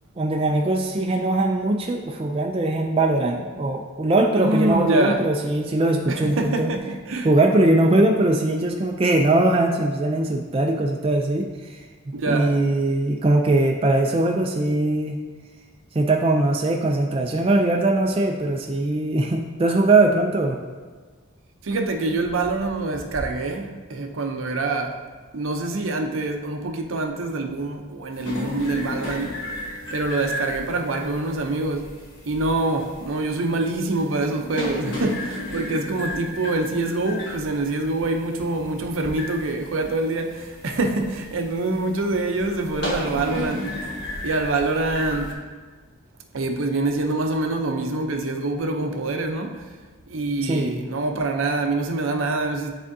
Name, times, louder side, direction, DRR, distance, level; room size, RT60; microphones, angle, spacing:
voice 1, 0.2-6.7 7.2-11.8 12.3-15.2 15.9-20.6 50.4-50.8, right 2 dB, 25° right, 1 dB, 0.3 m, -21 dB
voice 2, 4.4-5.2 6.1-7.3 12.1-12.6 21.6-25.0 25.3-29.4 29.9-31.9 32.3-43.7 44.2-45.4 46.3-49.7 50.1-52.7, right 2 dB, 70° right, 4 dB, 0.6 m, -25 dB
sound 1, 28.1-45.3, left 1 dB, 55° left, 1.2 m, -34 dB
9.9 x 3.5 x 2.7 m, 1.4 s
head